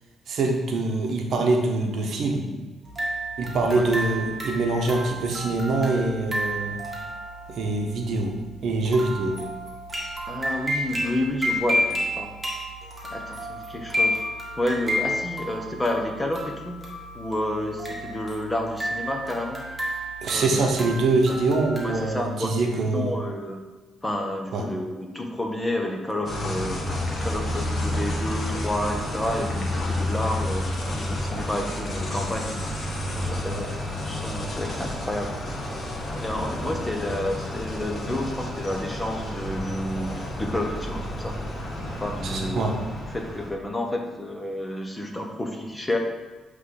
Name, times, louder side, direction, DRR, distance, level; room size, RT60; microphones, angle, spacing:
voice 1, 0.3-2.5 3.4-6.8 7.5-8.3 8.6-9.4 20.2-23.1 24.5-24.6 42.2-42.7, right 2 dB, 65° right, 2 dB, 0.9 m, -24 dB
sound 1, 2.8-22.2, equal, 15° right, 1.5 m, -31 dB
voice 2, 10.3-12.3 13.1-14.2 14.6-16.8 17.1-19.6 20.3-20.7 21.3-21.4 21.8-22.6 22.9-23.6 24.0-26.8 27.2-32.7 33.1-33.7 34.0-35.3 36.1-41.4 42.0-42.7 43.1-46.0, left 1 dB, 15° left, 2 dB, 0.9 m, -30 dB
sound 2, 26.3-43.5, left 1 dB, 45° left, 1.1 m, -30 dB
7.8 x 3.2 x 3.8 m, 1.3 s
cardioid pair, 90°, 0 cm